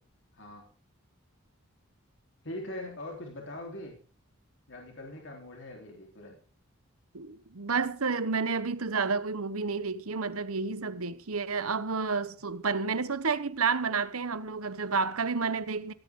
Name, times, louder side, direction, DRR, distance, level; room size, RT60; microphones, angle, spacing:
voice 1, 0.3-0.7 2.4-4.0 4.7-6.4, left 1 dB, 60° left, 3.9 m, -42 dB
voice 2, 7.1-15.9, right 4 dB, 90° right, 1.1 m, -30 dB
17.0 x 14.0 x 3.8 m
head